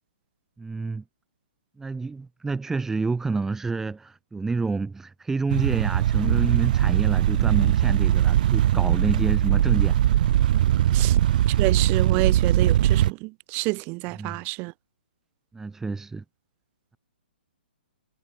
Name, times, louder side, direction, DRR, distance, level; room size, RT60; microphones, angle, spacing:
voice 1, 0.6-1.0 1.8-10.0 10.9-11.1 14.2-14.4 15.5-16.2, right 4 dB, 5° right, 1.1 m, -28 dB
sound 1, 5.5-13.1, right 12 dB, 50° right, 0.6 m, -20 dB
voice 2, 11.6-14.7, right 28 dB, 30° right, 2.5 m, -28 dB
figure-of-eight pair, 130°, 6 cm